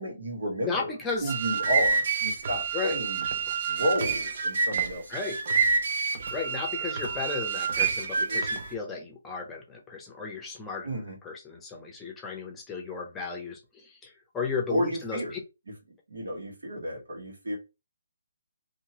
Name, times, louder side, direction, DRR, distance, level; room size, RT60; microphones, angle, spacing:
voice 1, 0.0-0.9 1.2-3.3 3.7-5.4 10.8-11.2 14.7-15.3 16.1-17.6, equal, 90° right, 1.6 m, -32 dB
voice 2, 0.6-1.3 2.7-3.0 3.5-3.6 5.1-5.4 6.3-10.9 11.2-15.2, left 5 dB, 10° left, 0.6 m, -34 dB
sound 1, 1.1-8.7, right 5 dB, 50° right, 0.6 m, -28 dB
2.8 x 2.6 x 2.8 m
hypercardioid pair, 165°, 0 cm